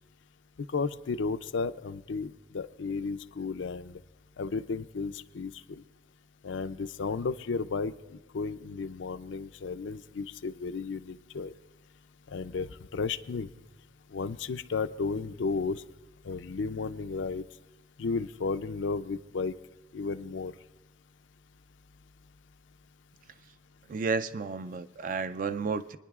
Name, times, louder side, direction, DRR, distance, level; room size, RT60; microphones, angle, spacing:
voice 1, 0.7-4.0 4.4-5.8 6.4-7.9 8.3-11.5 12.3-13.5 14.1-15.8 16.2-17.4 18.0-19.5 19.9-20.5, left 4 dB, 80° left, 12 dB, 0.5 m, -33 dB
voice 2, 23.9-26.0, right 4 dB, 45° right, 13 dB, 0.4 m, -32 dB
26.5 x 10.0 x 2.4 m, 1.2 s
head